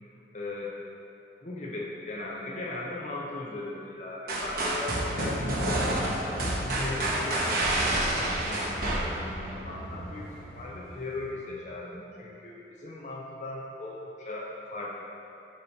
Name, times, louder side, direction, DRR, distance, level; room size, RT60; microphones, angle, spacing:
voice 1, 0.3-0.8 1.4-6.1 6.7-15.0, left 2 dB, 40° left, -4 dB, 0.7 m, -38 dB
sound 1, 4.3-9.5, right 1 dB, 55° right, 1.1 m, -28 dB
sound 2, 6.9-11.6, equal, 5° left, 1.4 m, -39 dB
7.0 x 3.1 x 5.2 m, 2.9 s
head